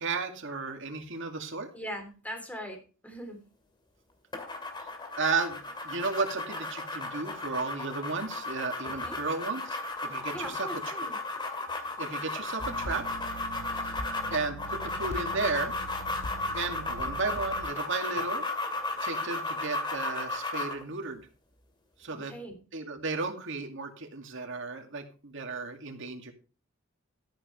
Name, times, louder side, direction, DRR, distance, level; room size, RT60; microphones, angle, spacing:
voice 1, 0.0-1.7 4.8-4.9 5.2-10.7 12.0-13.1 13.8-13.9 14.3-15.7 16.5-18.4 19.0-21.2 22.0-22.3 22.7-26.3, right 4 dB, 65° right, 5 dB, 2.3 m, -34 dB
voice 2, 1.7-3.4 9.0-9.2 10.3-11.2 22.1-22.6, equal, 5° left, 5 dB, 3.3 m, -40 dB
sound 1, 4.3-20.8, left 2 dB, 25° left, 2.5 m, -35 dB
sound 2, 12.6-17.6, right 1 dB, 80° left, 1.6 m, -41 dB
13.0 x 10.5 x 3.2 m, 0.35 s
head